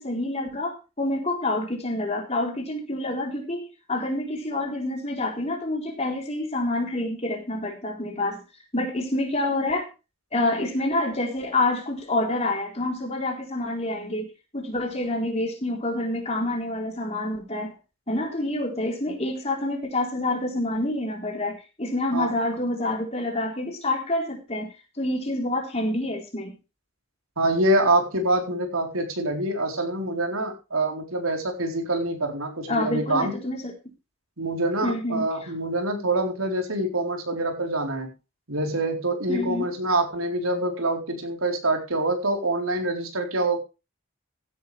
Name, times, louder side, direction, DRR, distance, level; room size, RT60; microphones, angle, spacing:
voice 1, 0.0-3.6 3.9-8.4 8.7-9.9 10.3-17.7 18.1-26.6 32.7-33.7 34.8-35.2 39.3-39.7, left 2 dB, 30° left, 1 dB, 4.0 m, -27 dB
voice 2, 27.4-33.3 34.4-38.1 38.5-43.6, right 2 dB, 85° right, 3 dB, 4.2 m, -25 dB
16.0 x 10.5 x 3.5 m, 0.30 s
head